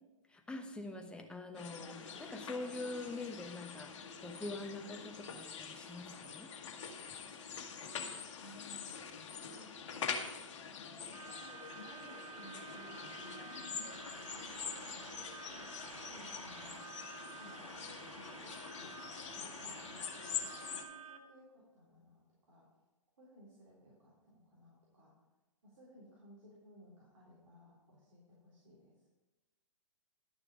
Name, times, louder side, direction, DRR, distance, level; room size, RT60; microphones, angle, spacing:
voice 1, 0.3-6.5, left 2 dB, 5° left, 4 dB, 1.0 m, -44 dB
sound 1, 1.5-20.8, left 6 dB, 60° left, 1.5 m, -45 dB
voice 2, 8.4-8.9 9.5-10.1 11.1-11.2 11.8-16.9 17.4-22.7 23.2-25.1 25.6-29.0, equal, 70° right, -6 dB, 3.7 m, -59 dB
sound 2, 11.1-21.2, right 5 dB, 85° right, 0.9 m, -51 dB
11.5 x 6.6 x 5.0 m, 1.1 s
hypercardioid pair, 120°, 17 cm